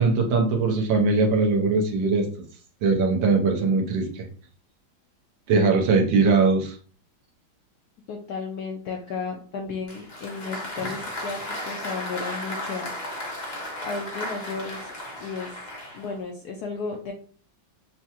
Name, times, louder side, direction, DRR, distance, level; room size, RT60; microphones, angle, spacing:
voice 1, 0.0-2.3 2.8-4.2 5.5-6.8, right 4 dB, 75° right, 2 dB, 1.6 m, -21 dB
voice 2, 8.1-14.9 15.2-15.5 15.9-17.1, left 4 dB, 75° left, 2 dB, 0.9 m, -34 dB
Applause, 9.9-16.2, left 1 dB, 50° left, 0.5 m, -35 dB
5.9 x 2.2 x 2.9 m, 0.43 s
omnidirectional pair, 2.2 m